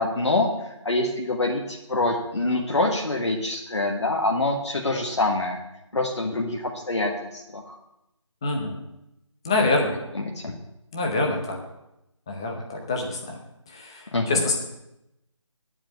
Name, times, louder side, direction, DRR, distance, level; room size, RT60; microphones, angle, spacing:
voice 1, 0.0-5.6 5.9-7.8 10.2-10.5 14.1-14.3, left 2 dB, 60° left, 0 dB, 1.5 m, -25 dB
voice 2, 8.4-8.8 9.4-10.0 10.9-11.6 12.3-13.4 13.7-14.6, left 2 dB, 10° left, 1 dB, 0.6 m, -25 dB
10.5 x 4.9 x 8.0 m, 0.88 s
figure-of-eight pair, 160°, 17 cm